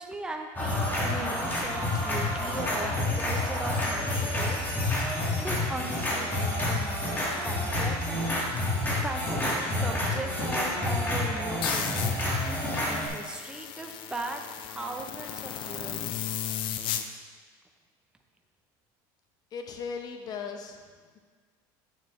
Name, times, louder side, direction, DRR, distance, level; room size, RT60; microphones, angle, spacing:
voice 1, 0.0-4.6 4.9-5.0 5.4-8.4 8.7-12.2 12.9-16.0, right 2 dB, 10° right, 3 dB, 0.7 m, -39 dB
sound 1, 0.6-13.1, left 1 dB, 20° left, 1.9 m, -29 dB
sound 2, 11.6-17.0, left 10 dB, 55° left, 0.5 m, -35 dB
voice 2, 19.5-20.8, left 5 dB, 40° left, 5 dB, 0.9 m, -37 dB
8.2 x 7.1 x 3.2 m, 1.5 s
supercardioid pair, 120°, 10 cm